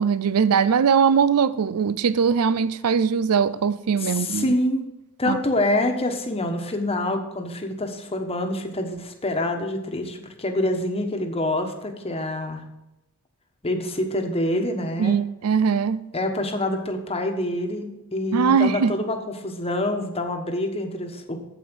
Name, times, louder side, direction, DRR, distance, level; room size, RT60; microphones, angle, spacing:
voice 1, 0.0-4.6 5.3-5.4 15.0-16.0 18.3-18.9, right 6 dB, 85° right, 0.5 m, -21 dB
voice 2, 4.0-4.9 5.2-12.6 13.6-15.2 16.1-21.4, left 1 dB, 25° left, 1.3 m, -26 dB
8.9 x 7.7 x 6.2 m
head